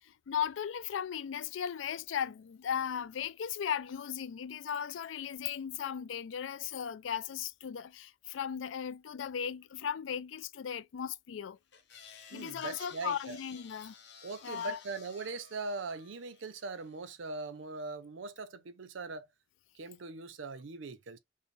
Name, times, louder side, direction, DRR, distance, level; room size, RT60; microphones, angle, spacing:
voice 1, 0.0-11.6 12.3-14.0 14.4-14.8, left 8 dB, 85° left, 0.4 m, -37 dB
sound 1, 11.7-17.1, left 6 dB, 65° left, 1.0 m, -55 dB
voice 2, 12.3-13.4 14.2-19.3 19.7-21.2, right 3 dB, 85° right, 0.6 m, -41 dB
5.4 x 2.1 x 3.1 m
head